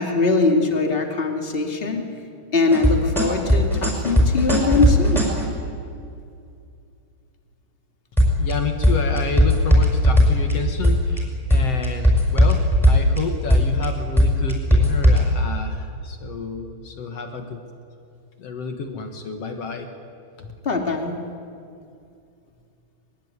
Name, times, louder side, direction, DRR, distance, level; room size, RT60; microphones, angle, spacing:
voice 1, 0.0-2.0 2.5-5.2 20.6-21.2, left 3 dB, 30° left, 3 dB, 1.0 m, -21 dB
sound 1, 2.7-5.4 8.2-8.5 8.8-10.5 10.8-11.2 11.5-13.2 13.5-13.9 14.2-15.2, equal, ahead, 5.7 m, -16 dB
voice 2, 8.4-17.6 18.4-19.9 20.4-20.5, left 5 dB, 65° left, 6 dB, 1.5 m, -30 dB
22.5 x 22.0 x 9.5 m, 2.5 s
omnidirectional pair, 5.1 m